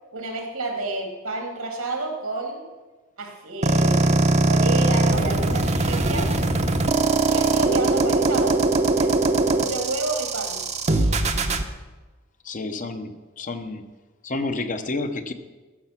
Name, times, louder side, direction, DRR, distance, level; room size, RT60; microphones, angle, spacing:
voice 1, 0.1-2.7 3.2-6.4 7.3-8.6 9.0-9.2 9.6-10.6, right 2 dB, 85° right, 2 dB, 2.6 m, -30 dB
sound 1, 3.6-11.6, right 2 dB, 30° right, 0.8 m, -21 dB
voice 2, 12.4-13.9 14.2-15.3, left 3 dB, 40° left, 8 dB, 0.8 m, -30 dB
14.5 x 7.1 x 5.9 m, 1.2 s
head